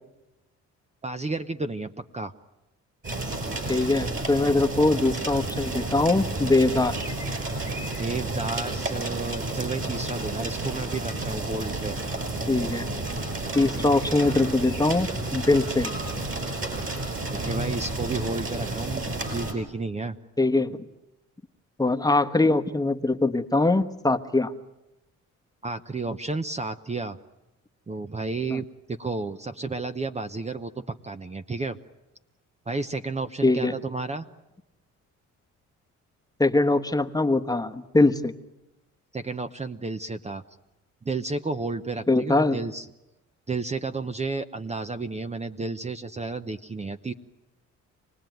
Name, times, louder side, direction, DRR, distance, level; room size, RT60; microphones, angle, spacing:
voice 1, 1.0-2.3 8.0-11.9 17.3-20.2 25.6-27.2 27.9-31.8 32.7-34.3 39.1-40.4 41.0-42.9 43.5-47.1, right 3 dB, 20° right, 9 dB, 0.9 m, -32 dB
sound 1, 3.0-19.5, right 2 dB, 45° right, 5.9 m, -31 dB
voice 2, 3.7-6.9 12.5-12.9 13.5-15.9 20.4-20.8 21.8-24.5 28.5-28.6 33.4-33.7 36.4-38.3 42.1-42.6, left 2 dB, 10° left, 6 dB, 1.2 m, -22 dB
27.0 x 19.0 x 9.3 m, 0.98 s
cardioid pair, 90°, 30 cm